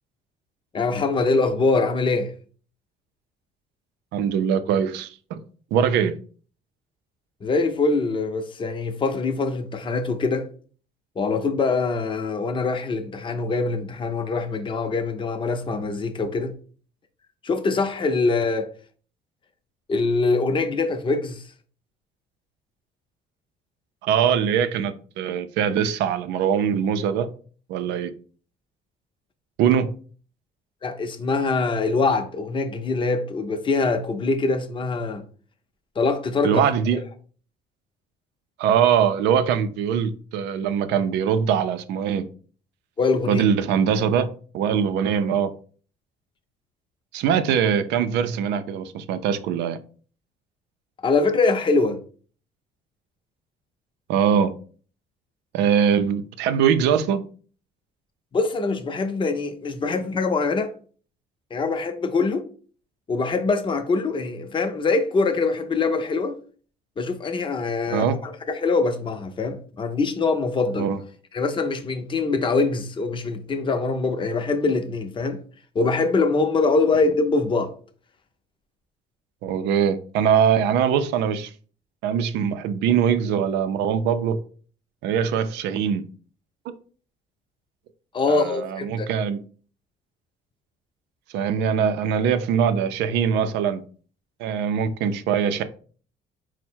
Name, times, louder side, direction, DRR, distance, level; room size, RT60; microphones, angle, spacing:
voice 1, 0.7-2.3 7.4-10.5 11.2-16.5 17.4-18.7 19.9-21.4 30.8-35.3 36.0-36.6 36.9-37.0 43.0-43.4 51.0-52.0 58.3-60.7 61.5-62.4 63.1-66.4 67.0-70.9 71.3-75.4 75.7-77.7 88.1-89.1, left 3 dB, 30° left, 0.6 m, -23 dB
voice 2, 4.1-5.4 5.7-6.1 24.0-27.3 27.7-28.1 29.6-29.9 36.4-37.0 38.6-42.3 43.3-44.3 44.5-45.5 47.1-49.8 54.1-54.5 55.5-57.2 67.9-68.2 70.8-71.0 79.4-81.5 82.0-84.4 85.0-86.0 88.3-89.4 91.3-93.8 94.4-95.6, right 8 dB, 85° right, 0.5 m, -22 dB
4.4 x 2.1 x 4.4 m
cardioid pair, 110°, 17 cm